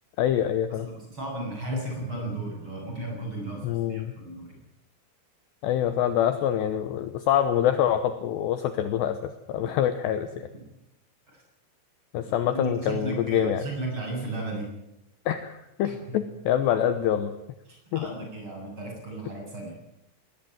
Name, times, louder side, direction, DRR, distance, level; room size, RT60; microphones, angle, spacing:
voice 1, 0.2-0.9 1.7-1.8 3.6-4.1 5.6-10.5 12.1-13.6 15.3-17.3 17.9-18.1, left 10 dB, 75° left, 10 dB, 2.7 m, -25 dB
voice 2, 0.7-4.6 9.6-9.8 10.5-10.6 12.2-14.7 15.8-16.2 17.7-19.7, right 2 dB, 25° right, 1 dB, 7.8 m, -35 dB
20.5 x 19.0 x 9.4 m, 0.88 s
omnidirectional pair, 6.0 m